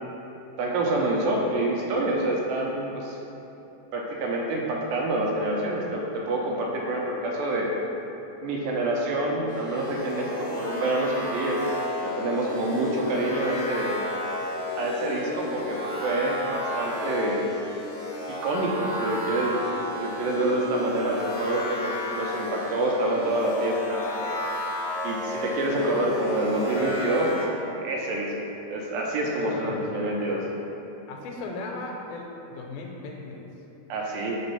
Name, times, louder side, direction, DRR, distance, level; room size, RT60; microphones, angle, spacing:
voice 1, 0.6-3.2 3.9-7.7 8.4-11.8 12.0-14.0 14.7-17.5 18.3-19.6 19.9-24.4 25.0-28.3 28.7-30.4 33.9-34.4, right 1 dB, 80° right, -2 dB, 2.2 m, -27 dB
sound 1, 9.5-27.4, left 1 dB, 50° left, 1.2 m, -33 dB
voice 2, 29.5-29.9 31.1-33.5, left 3 dB, 85° left, 1 dB, 2.6 m, -37 dB
5.2 x 3.8 x 5.5 m, 3.0 s
omnidirectional pair, 4.3 m